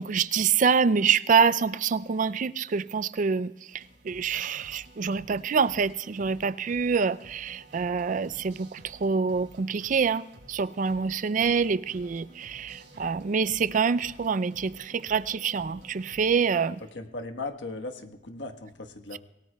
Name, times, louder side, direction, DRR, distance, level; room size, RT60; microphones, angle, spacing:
voice 1, 0.0-16.8 19.1-19.2, right 5 dB, 45° right, 0.4 m, -26 dB
sound 1, 3.7-16.5, right 1 dB, 70° right, 5.2 m, -52 dB
voice 2, 16.9-19.2, left 3 dB, 80° left, 1.3 m, -37 dB
26.0 x 18.0 x 2.3 m
head